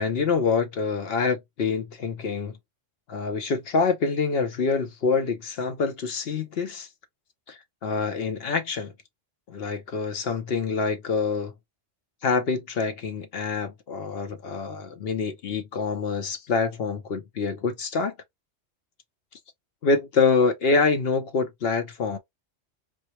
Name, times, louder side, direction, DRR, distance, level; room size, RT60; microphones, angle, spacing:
voice 1, 0.0-2.6 3.1-6.9 7.5-8.9 9.5-11.5 12.2-18.1 19.8-22.2, left 4 dB, 60° left, 0.8 m, -26 dB
4.4 x 2.0 x 2.9 m
omnidirectional pair, 1.3 m